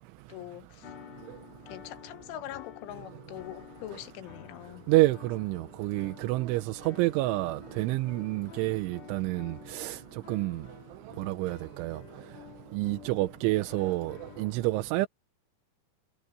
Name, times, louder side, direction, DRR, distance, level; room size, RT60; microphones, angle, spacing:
voice 1, 0.3-0.9 1.7-4.9, left 14 dB, 85° left, 3.7 m, -43 dB
sound 1, 0.8-14.5, left 11 dB, 65° left, 4.3 m, -50 dB
voice 2, 4.9-10.0 10.3-10.6 11.2-12.0 12.7-15.1, right 19 dB, 85° right, 3.2 m, -28 dB
omnidirectional pair, 5.4 m